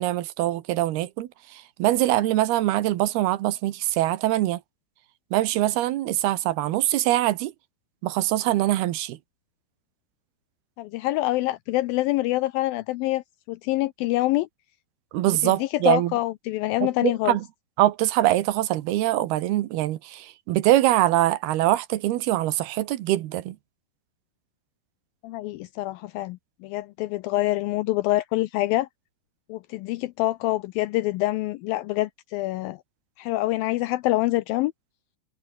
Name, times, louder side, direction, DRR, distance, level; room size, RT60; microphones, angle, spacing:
voice 1, 0.0-4.6 5.3-7.5 8.0-9.2 15.1-16.1 16.8-17.4 17.8-23.6, right 15 dB, 80° right, 3.0 m, -23 dB
voice 2, 10.8-14.5 15.4-17.4 25.2-28.9 29.5-32.8 33.2-34.7, left 17 dB, 85° left, 2.1 m, -26 dB
omnidirectional pair, 4.7 m